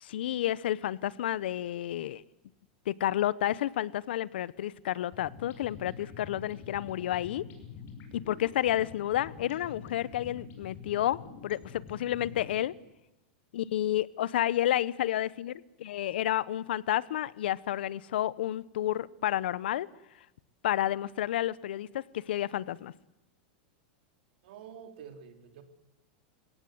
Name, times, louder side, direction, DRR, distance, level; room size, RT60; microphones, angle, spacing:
voice 1, 0.0-2.2 2.9-7.4 8.1-12.7 13.5-19.9 20.6-22.9, left 12 dB, 80° left, 19 dB, 1.0 m, -30 dB
sound 1, 5.0-12.6, left 6 dB, 35° left, 5.9 m, -47 dB
voice 2, 24.4-25.6, right 7 dB, 70° right, 7 dB, 3.8 m, -48 dB
30.0 x 17.5 x 8.0 m, 0.97 s
supercardioid pair, 145°, 6 cm